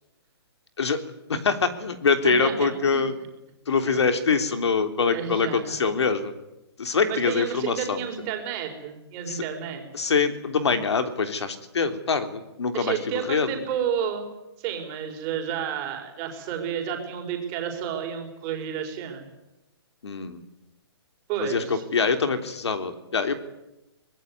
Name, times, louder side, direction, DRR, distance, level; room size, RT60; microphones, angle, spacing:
voice 1, 1.3-3.1 3.7-6.3 6.8-8.0 9.3-9.4 9.9-13.0 13.3-13.5 20.0-20.4 21.4-23.4, left 5 dB, 80° left, 8 dB, 3.3 m, -24 dB
voice 2, 2.2-3.0 3.8-4.0 5.1-5.7 7.1-9.8 12.7-14.2 14.6-19.2 21.3-21.8, right 8 dB, 20° right, 4 dB, 4.5 m, -31 dB
25.0 x 20.0 x 9.5 m, 0.97 s
hypercardioid pair, 170°, 14 cm